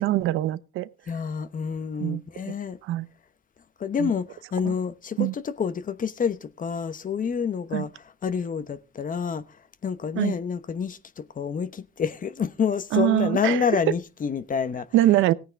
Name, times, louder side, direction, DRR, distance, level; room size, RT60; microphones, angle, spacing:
voice 1, 0.0-0.9 2.0-2.2 2.5-2.6 2.8-3.1 4.0-4.1 4.7-4.8 5.2-5.3 7.7-7.9 10.2-10.3 12.9-13.6 14.9-15.3, right 14 dB, 90° right, 0.7 m, -23 dB
voice 2, 1.1-2.8 3.8-7.9 8.2-9.5 9.8-14.9, left 6 dB, 45° left, 1.0 m, -28 dB
17.5 x 9.3 x 3.4 m
cardioid pair, 90°, 20 cm